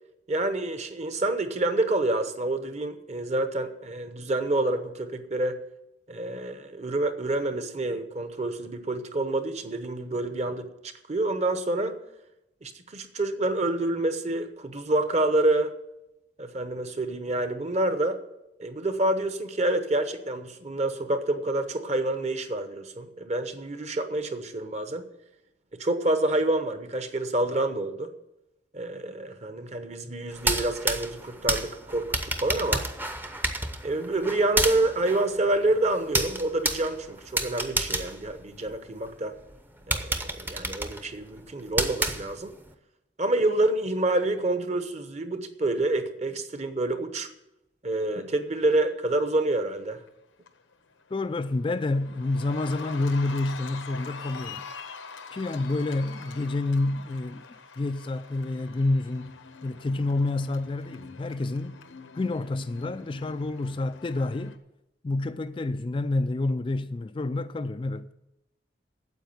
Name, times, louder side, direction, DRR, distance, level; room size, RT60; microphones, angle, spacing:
voice 1, 0.3-5.6 6.1-10.7 11.1-11.9 12.6-15.7 16.4-18.2 18.6-25.0 25.8-28.1 28.7-32.1 32.4-32.8 33.8-39.3 39.9-42.5 43.2-47.3 47.8-50.0, right 2 dB, 35° right, 0.9 m, -27 dB
sound 1, 30.3-39.1 39.5-39.6 39.9-42.7, right 2 dB, 10° right, 0.7 m, -30 dB
Cheering, 49.7-50.1 50.5-64.6, left 5 dB, 90° left, 1.1 m, -44 dB
voice 2, 51.1-54.7 55.3-57.5 57.8-59.4 59.6-61.8 62.1-64.6 65.0-68.1, left 2 dB, 25° left, 0.3 m, -28 dB
9.2 x 7.8 x 9.2 m
head